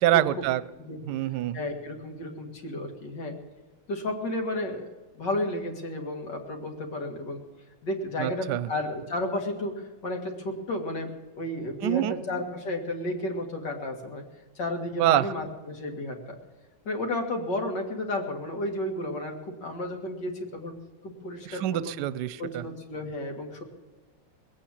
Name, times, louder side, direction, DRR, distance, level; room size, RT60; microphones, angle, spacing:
voice 1, 0.0-0.6 1.0-1.6 8.2-8.7 11.8-12.2 15.0-15.3 21.4-22.6, right 13 dB, 70° right, 16 dB, 1.1 m, -25 dB
voice 2, 0.8-1.1 1.5-3.4 3.9-4.9 5.2-7.4 7.8-14.2 14.6-16.4 16.9-20.7 21.0-21.9 22.4-23.6, left 1 dB, 65° left, 2 dB, 2.7 m, -32 dB
20.5 x 8.6 x 7.3 m, 1.3 s
omnidirectional pair, 2.0 m